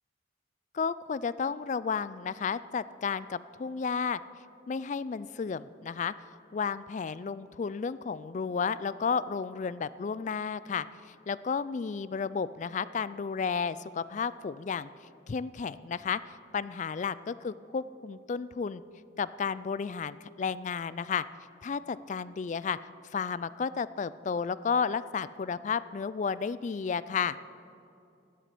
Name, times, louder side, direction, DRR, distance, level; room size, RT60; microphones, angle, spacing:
voice 1, 0.7-4.2 4.7-14.9 15.3-18.8 19.2-21.2 21.6-22.8 23.1-27.4, left 6 dB, 40° left, 17 dB, 0.3 m, -32 dB
13.5 x 11.0 x 7.7 m, 2.6 s
head